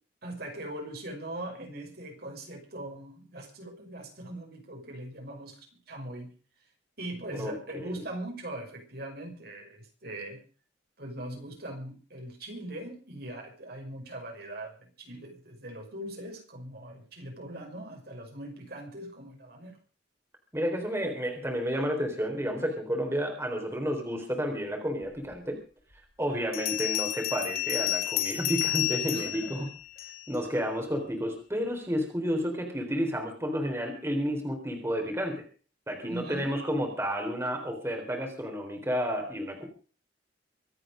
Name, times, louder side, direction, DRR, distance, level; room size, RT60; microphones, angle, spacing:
voice 1, 0.2-6.3 7.0-10.4 11.0-19.8 29.1-29.7 36.0-36.5, right 1 dB, 60° right, 2 dB, 5.7 m, -41 dB
voice 2, 7.3-8.0 20.5-25.6 26.2-29.7 30.3-35.4 35.9-39.6, equal, 15° right, 3 dB, 3.9 m, -31 dB
Bell, 25.3-25.4 26.5-30.4, left 15 dB, 55° left, 3.0 m, -31 dB
25.0 x 8.9 x 5.1 m, 0.38 s
head